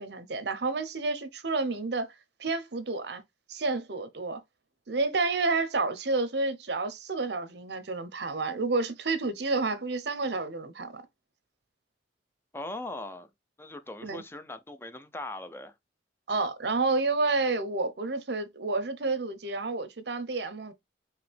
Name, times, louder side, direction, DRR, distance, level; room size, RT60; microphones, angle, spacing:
voice 1, 0.0-2.1 2.4-3.2 3.5-4.4 4.9-11.0 14.0-14.2 16.3-20.7, right 3 dB, 65° right, 0.8 m, -30 dB
voice 2, 12.5-13.3 13.6-15.7, left 2 dB, 15° left, 0.5 m, -40 dB
4.9 x 3.1 x 3.3 m
head